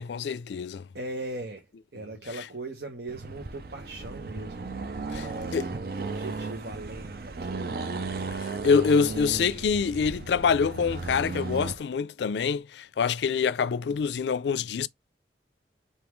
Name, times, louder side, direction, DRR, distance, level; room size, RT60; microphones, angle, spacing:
voice 1, 0.0-0.9 2.3-2.4 5.1-5.3 5.5-5.7 8.4-14.9, left 6 dB, 80° left, 0.4 m, -26 dB
voice 2, 0.9-1.7 1.9-7.6, right 2 dB, 75° right, 1.0 m, -39 dB
Accelerating revving vroom, 3.1-11.8, right 3 dB, 55° right, 0.5 m, -35 dB
3.5 x 2.6 x 4.6 m
head